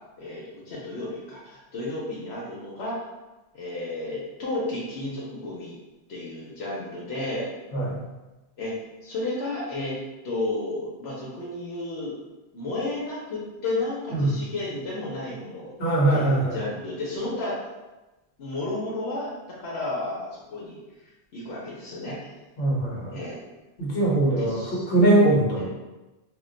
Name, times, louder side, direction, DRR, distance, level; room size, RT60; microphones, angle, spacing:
voice 1, 0.2-3.1 3.5-5.7 6.1-7.5 8.6-8.7 9.0-9.9 10.2-12.1 12.5-15.7 16.1-17.6 18.4-19.3 19.6-20.8 21.3-22.3 23.1-23.4 24.4-24.8 25.6-25.7, left 2 dB, 85° left, -6 dB, 1.0 m, -32 dB
voice 2, 15.8-16.6 22.6-23.2 23.8-25.7, right 2 dB, 60° left, -5 dB, 1.1 m, -22 dB
2.4 x 2.2 x 3.8 m, 1.1 s
omnidirectional pair, 1.1 m